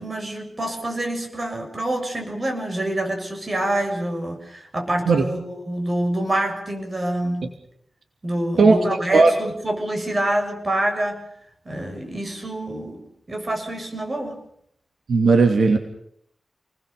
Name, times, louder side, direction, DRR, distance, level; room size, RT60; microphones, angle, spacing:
voice 1, 0.0-7.4 8.2-11.2 11.7-13.0 13.3-14.4, right 1 dB, 35° right, 4 dB, 7.0 m, -26 dB
voice 2, 15.1-15.8, right 4 dB, 80° right, 5 dB, 2.6 m, -15 dB
29.0 x 20.5 x 6.9 m, 0.71 s
wide cardioid pair, 115°, 0 cm